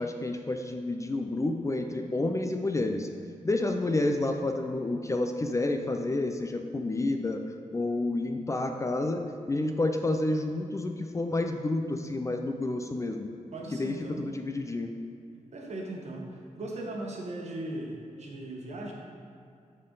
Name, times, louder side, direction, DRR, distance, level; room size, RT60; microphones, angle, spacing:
voice 1, 0.0-3.1 3.4-7.4 7.7-9.2 9.5-13.3 13.8-14.9, left 2 dB, 25° left, 5 dB, 0.4 m, -29 dB
voice 2, 13.5-14.2 15.5-18.9, right 1 dB, 55° right, -1 dB, 1.2 m, -38 dB
10.0 x 4.4 x 3.9 m, 2.5 s
wide cardioid pair, 105°, 13 cm